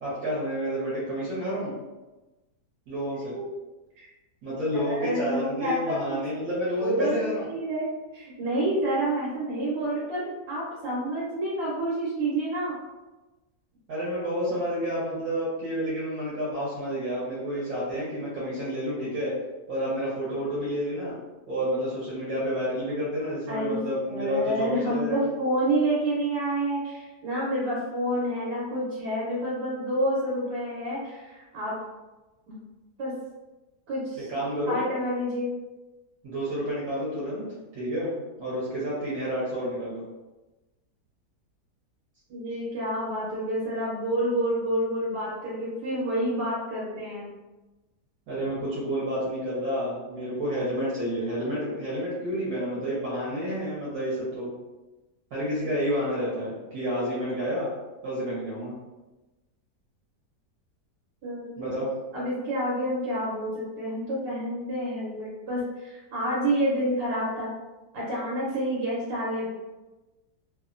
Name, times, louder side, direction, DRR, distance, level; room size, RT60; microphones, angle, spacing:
voice 1, 0.0-1.7 2.9-3.4 4.4-7.5 13.9-19.3 19.7-21.1 21.5-25.3 34.3-34.8 36.2-37.4 37.7-38.1 38.4-40.0 48.3-54.5 55.3-57.7 58.0-58.7 61.6-61.9, equal, 65° right, -8 dB, 1.2 m, -29 dB
voice 2, 4.7-6.2 6.8-12.7 23.5-23.8 24.1-31.8 32.5-32.6 33.0-33.1 33.9-34.3 34.7-35.5 42.3-47.3 61.2-61.5 62.1-67.5 67.9-69.5, right 1 dB, 85° right, -7 dB, 1.4 m, -28 dB
3.1 x 2.1 x 2.4 m, 1.1 s
omnidirectional pair, 1.8 m